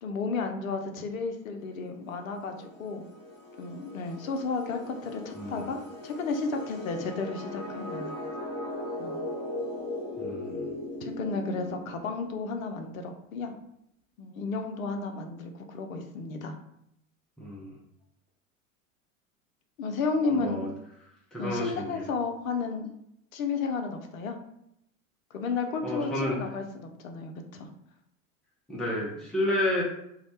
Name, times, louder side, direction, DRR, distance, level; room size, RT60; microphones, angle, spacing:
voice 1, 0.0-3.0 3.6-8.2 9.0-9.3 11.0-13.5 14.2-16.5 19.8-20.6 21.4-22.9 23.3-24.4 25.3-27.7, left 4 dB, 75° left, 5 dB, 0.5 m, -33 dB
sound 1, 2.0-12.5, left 1 dB, 35° left, 0.7 m, -39 dB
voice 2, 5.3-5.7 10.2-10.7 17.4-17.8 20.3-20.7 21.3-22.0 25.8-26.4 28.7-29.8, left 1 dB, ahead, -4 dB, 0.3 m, -31 dB
2.2 x 2.0 x 2.8 m, 0.78 s
figure-of-eight pair, 80°, 41 cm